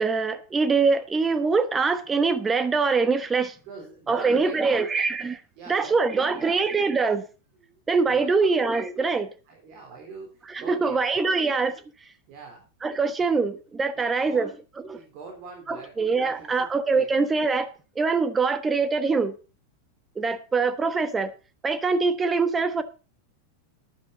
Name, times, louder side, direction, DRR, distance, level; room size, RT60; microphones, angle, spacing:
voice 1, 0.0-3.6 4.1-5.4 5.7-7.2 7.9-9.3 10.5-11.7 12.8-14.5 14.9-15.0 15.7-17.7 17.9-19.3 20.2-21.3 21.6-22.8, right 4 dB, 15° right, 1.1 m, -23 dB
voice 2, 3.6-4.8 5.6-6.6 7.6-8.5 9.5-11.3 12.3-12.7 14.0-14.5 14.9-17.1, right 4 dB, 45° right, 3.9 m, -43 dB
12.5 x 10.5 x 4.0 m
figure-of-eight pair, 90°, 0 cm